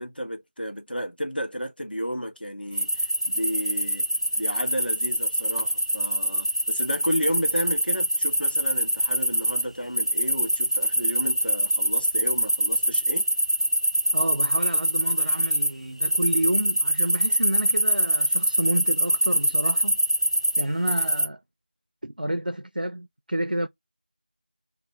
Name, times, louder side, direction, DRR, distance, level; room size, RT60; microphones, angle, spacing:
voice 1, 0.0-4.1 4.4-13.3, equal, 70° left, 0.9 m, -32 dB
sound 1, 2.7-9.6 10.0-15.7 16.0-21.3, right 1 dB, 35° left, 0.4 m, -24 dB
voice 2, 14.1-20.0 20.6-21.4 22.0-23.7, right 1 dB, 65° right, 0.4 m, -29 dB
2.5 x 2.0 x 2.8 m
figure-of-eight pair, 180°, 5 cm